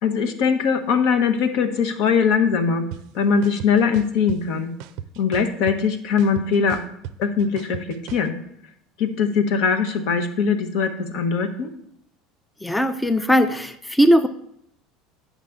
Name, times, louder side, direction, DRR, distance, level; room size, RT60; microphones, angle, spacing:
voice 1, 0.0-2.8 3.1-4.7 5.2-6.8 7.2-8.3 9.0-11.7, left 6 dB, 65° left, 7 dB, 0.9 m, -21 dB
sound 1, 2.9-3.0 3.4-4.4 4.8-5.9 6.2-8.3, right 11 dB, 70° right, 0.4 m, -35 dB
voice 2, 12.6-14.3, equal, 5° left, 10 dB, 0.4 m, -18 dB
8.4 x 5.6 x 3.6 m, 0.72 s
supercardioid pair, 95°, 0 cm